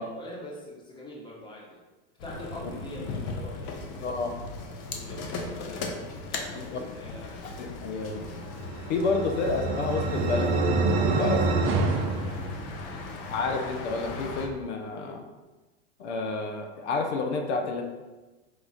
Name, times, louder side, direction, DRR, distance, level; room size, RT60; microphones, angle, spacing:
voice 1, 0.0-1.8 2.2-4.4 4.9-7.9 11.6-13.2, left 1 dB, 15° left, -3 dB, 1.0 m, -45 dB
sound 1, 2.2-14.5, left 3 dB, 50° left, 0.7 m, -38 dB
voice 2, 4.0-4.3 6.7-6.8 7.4-8.3 8.9-11.6 13.3-15.2 16.0-17.8, left 3 dB, 85° left, 4 dB, 0.7 m, -30 dB
sound 2, 8.5-13.1, right 3 dB, 40° right, 0.6 m, -27 dB
4.8 x 2.4 x 4.0 m, 1.2 s
supercardioid pair, 130°, 33 cm